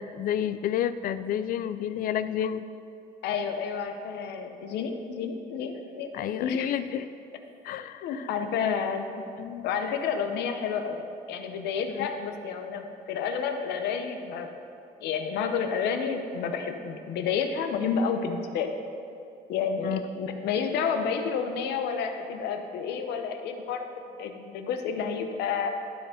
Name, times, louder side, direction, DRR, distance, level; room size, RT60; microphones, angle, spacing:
voice 1, 0.0-2.6 6.1-7.0 7.6-8.8 9.4-10.0 11.9-12.1 19.8-20.0, left 10 dB, 60° left, 13 dB, 0.4 m, -31 dB
voice 2, 3.2-6.7 8.0-9.0 9.6-14.5 15.0-18.7 19.5-23.8 24.2-25.7, left 6 dB, 80° left, 6 dB, 0.8 m, -30 dB
12.0 x 4.6 x 5.0 m, 2.5 s
cardioid pair, 110°, 17 cm